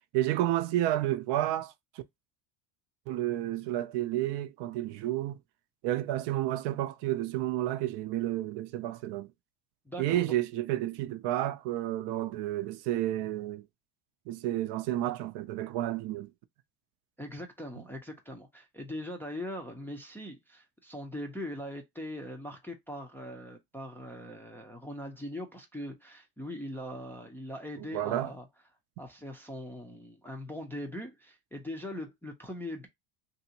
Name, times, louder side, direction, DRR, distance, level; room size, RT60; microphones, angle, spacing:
voice 1, 0.1-1.7 3.1-5.4 5.8-9.3 10.0-13.7 14.3-16.3 27.9-28.3, right 14 dB, 60° right, 0.5 m, -31 dB
voice 2, 9.9-10.3 17.2-28.5 29.0-32.9, left 1 dB, 5° left, 0.4 m, -41 dB
2.9 x 2.7 x 2.8 m
supercardioid pair, 115°, 47 cm